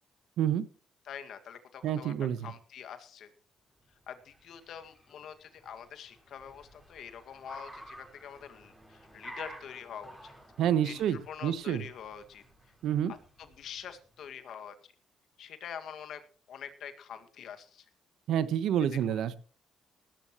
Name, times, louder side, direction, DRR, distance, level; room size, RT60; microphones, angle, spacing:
voice 1, 1.0-3.3 4.1-10.3 10.8-12.4 13.4-14.9 15.4-16.2 16.5-17.9 18.9-19.2, left 8 dB, 70° left, 8 dB, 2.0 m, -45 dB
voice 2, 1.8-2.5 10.6-11.8 12.8-13.1 18.3-19.4, right 10 dB, 80° right, 14 dB, 1.1 m, -28 dB
Car, 3.9-14.2, right 1 dB, 5° right, 6.5 m, -52 dB
18.0 x 13.5 x 3.1 m, 0.38 s
cardioid pair, 90°, 0 cm